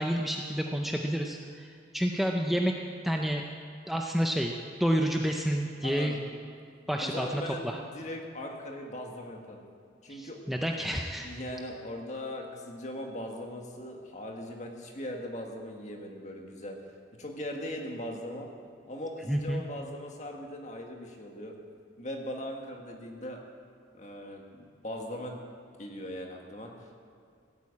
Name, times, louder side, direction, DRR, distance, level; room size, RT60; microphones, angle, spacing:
voice 1, 0.0-2.7 3.0-3.4 3.9-4.5 4.8-6.2 6.9-7.8 10.1-11.3 19.3-19.6, equal, ahead, 1 dB, 0.6 m, -29 dB
voice 2, 5.8-6.2 7.0-9.6 10.0-10.4 11.2-16.8 17.2-18.5 18.9-21.5 22.0-23.4 23.9-25.4 25.8-27.0, left 1 dB, 40° left, 1 dB, 1.8 m, -39 dB
16.5 x 8.6 x 8.5 m, 2.3 s
head